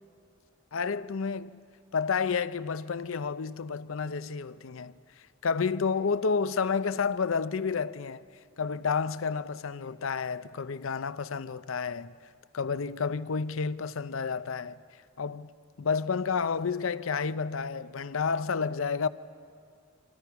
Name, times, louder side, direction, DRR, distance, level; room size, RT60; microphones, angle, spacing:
voice 1, 0.7-1.6 1.9-4.9 5.4-8.2 8.6-12.1 12.5-14.8 15.2-15.5 15.8-19.1, left 5 dB, 70° left, 0.6 m, -30 dB
26.5 x 25.5 x 5.9 m
head